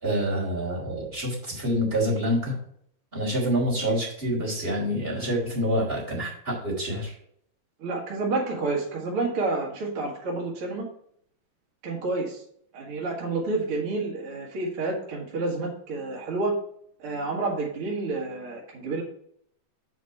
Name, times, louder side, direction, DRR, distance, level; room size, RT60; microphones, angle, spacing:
voice 1, 0.0-2.6 3.1-7.1, equal, 15° right, -5 dB, 3.2 m, -27 dB
voice 2, 7.8-10.9 11.8-12.4 12.7-16.6 17.0-19.0, right 3 dB, 50° right, -3 dB, 2.1 m, -29 dB
7.6 x 5.2 x 4.2 m, 0.65 s
omnidirectional pair, 3.8 m